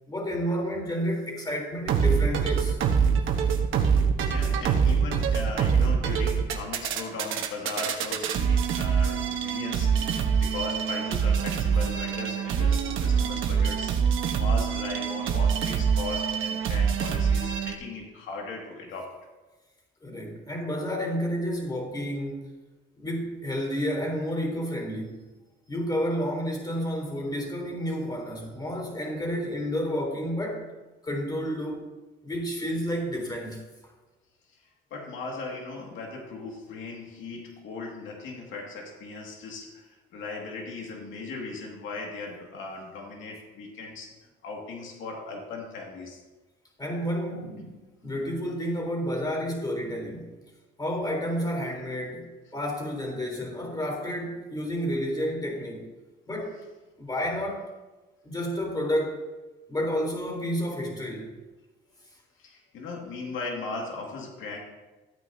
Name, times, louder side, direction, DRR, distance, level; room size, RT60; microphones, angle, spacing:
voice 1, 0.1-2.8 14.3-14.4 20.0-22.6 23.0-25.2 25.7-30.7 31.0-31.9 32.2-33.6 46.8-50.4 50.8-55.9 56.3-56.6 57.0-57.7 58.2-59.2 59.7-61.4, equal, 20° left, 0 dB, 3.9 m, -30 dB
sound 1, 1.9-17.7, right 6 dB, 85° right, 1.2 m, -25 dB
voice 2, 4.2-14.0 14.4-19.2 34.5-34.6 34.9-44.1 44.4-46.2 62.4-64.6, left 3 dB, 80° left, 0 dB, 2.2 m, -38 dB
15.0 x 9.1 x 2.8 m, 1.2 s
cardioid pair, 90°, 20 cm